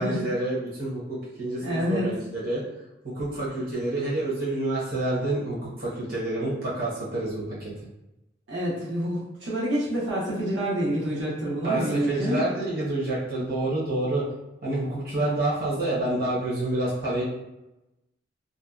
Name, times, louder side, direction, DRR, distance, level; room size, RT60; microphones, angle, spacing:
voice 1, 0.0-2.6 3.0-7.7 11.6-14.2 14.6-17.2, right 2 dB, 55° right, -7 dB, 0.8 m, -28 dB
voice 2, 1.6-2.1 8.5-12.4 15.2-15.4, equal, 90° right, -6 dB, 0.8 m, -28 dB
2.5 x 2.1 x 2.3 m, 0.96 s
head